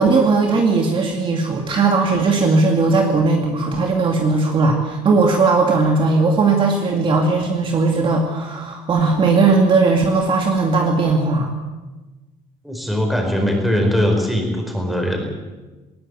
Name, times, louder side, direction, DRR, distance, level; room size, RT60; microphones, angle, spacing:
voice 1, 0.0-11.5, right 3 dB, 35° right, 2 dB, 2.1 m, -17 dB
voice 2, 12.6-15.2, equal, ahead, 2 dB, 4.6 m, -20 dB
20.5 x 19.5 x 8.2 m, 1.2 s
cardioid pair, 170°, 15 cm